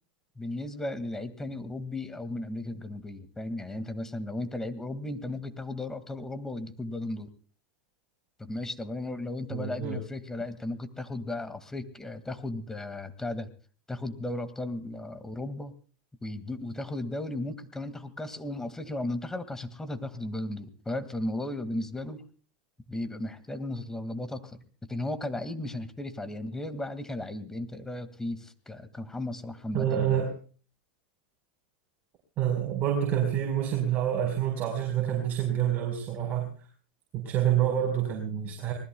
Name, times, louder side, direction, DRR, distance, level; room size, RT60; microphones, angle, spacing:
voice 1, 0.4-7.3 8.4-13.5 13.9-15.7 16.2-22.2 22.9-30.2, left 2 dB, 10° left, 10 dB, 2.1 m, -35 dB
voice 2, 9.5-10.0 29.7-30.3 32.4-36.5 37.1-38.7, right 10 dB, 40° right, 1 dB, 4.4 m, -27 dB
26.0 x 20.0 x 2.3 m, 0.40 s
hypercardioid pair, 110°, 5 cm